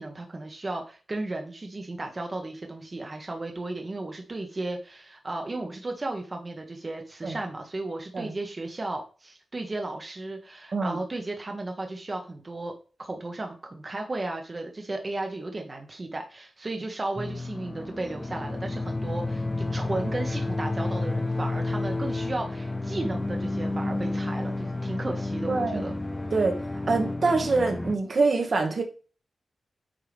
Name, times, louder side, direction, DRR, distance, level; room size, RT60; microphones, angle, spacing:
voice 1, 0.0-12.7 13.0-25.9, right 2 dB, 35° right, 1.1 m, -34 dB
sound 1, 17.2-28.0, left 2 dB, 15° left, 0.8 m, -31 dB
voice 2, 25.5-25.9 26.3-28.8, right 3 dB, 55° right, 1.5 m, -25 dB
8.9 x 4.7 x 3.4 m
wide cardioid pair, 95°, 0 cm